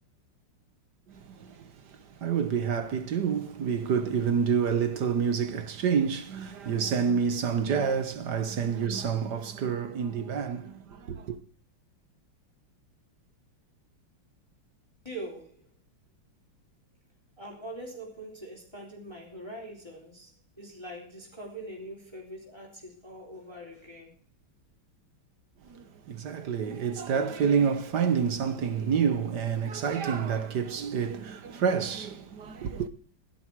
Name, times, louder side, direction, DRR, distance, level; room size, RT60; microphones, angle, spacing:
voice 1, 1.1-11.4 25.7-32.9, right 7 dB, 55° right, 1.5 m, -28 dB
voice 2, 15.0-15.7 17.4-24.1 25.7-25.8 26.1-26.2, right 1 dB, 10° left, 3.5 m, -43 dB
16.0 x 12.0 x 4.7 m
omnidirectional pair, 2.4 m